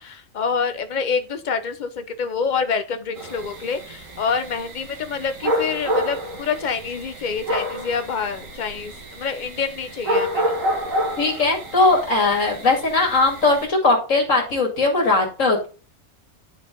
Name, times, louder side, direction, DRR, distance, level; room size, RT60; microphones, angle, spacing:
voice 1, 0.0-10.5, left 5 dB, 40° left, 10 dB, 0.9 m, -27 dB
sound 1, 3.2-13.7, equal, 75° right, 2.3 m, -29 dB
voice 2, 11.2-15.7, left 3 dB, 70° left, 1 dB, 2.6 m, -19 dB
10.5 x 4.8 x 3.8 m, 0.34 s
omnidirectional pair, 1.4 m